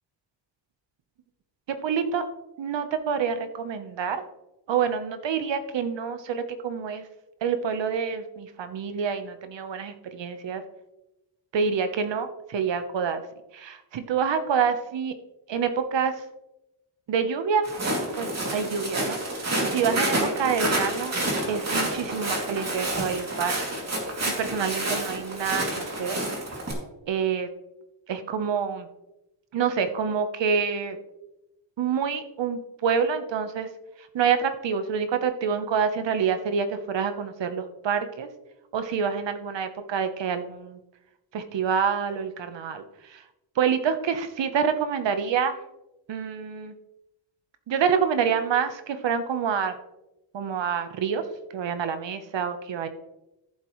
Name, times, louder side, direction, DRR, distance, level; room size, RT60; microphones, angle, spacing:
voice 1, 1.7-2.2 2.6-4.2 4.7-7.0 7.4-10.6 11.5-13.2 13.5-15.1 15.5-16.1 17.1-17.7 18.2-19.2 19.6-21.1 21.5-23.6 24.4-26.2 27.1-27.5 28.1-28.9 29.5-31.0 31.8-33.7 34.1-38.3 38.7-40.8 41.3-42.8 43.1-43.2 43.6-45.5 46.1-46.7 47.7-49.8 50.3-51.2 51.5-52.9, right 6 dB, 70° right, 9 dB, 1.1 m, -27 dB
Walk footsteps, 17.6-26.7, right 1 dB, 35° right, 2.8 m, -29 dB
14.5 x 7.5 x 3.2 m, 0.95 s
wide cardioid pair, 150°, 45 cm